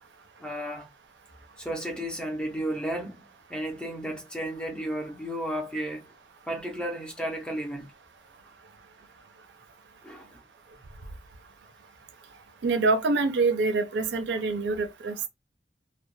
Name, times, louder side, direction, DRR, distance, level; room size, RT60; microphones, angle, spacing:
voice 1, 0.4-0.9 1.6-3.2 3.5-6.1 6.5-7.9 10.0-10.4, right 1 dB, 5° left, 0.4 m, -33 dB
voice 2, 12.6-15.3, right 3 dB, 70° right, 0.4 m, -25 dB
2.1 x 2.0 x 3.1 m
head